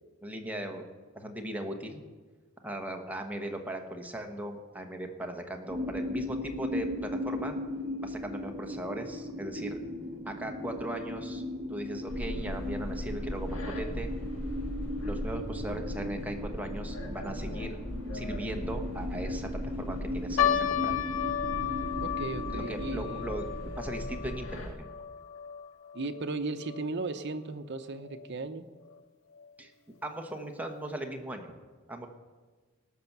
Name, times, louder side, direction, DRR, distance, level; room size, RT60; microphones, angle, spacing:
voice 1, 0.2-0.9 1.1-2.0 2.6-7.6 8.0-9.8 10.2-11.4 11.7-14.1 15.0-17.8 18.1-19.5 19.8-20.9 22.5-23.4 23.8-24.9 29.6-29.7 30.0-31.6 31.9-32.1, right 1 dB, 10° right, 3 dB, 1.2 m, -38 dB
sound 1, 5.7-23.7, left 1 dB, 30° right, 2.1 m, -38 dB
sound 2, 12.1-24.7, equal, 70° left, 2.0 m, -38 dB
sound 3, 20.4-26.9 27.1-27.2 28.0-28.3 28.9-29.0 29.3-29.5, left 9 dB, 85° left, 0.6 m, -33 dB
voice 2, 22.0-23.2 25.9-28.7, right 3 dB, 60° right, 8 dB, 0.8 m, -36 dB
18.5 x 6.8 x 6.0 m, 1.4 s
head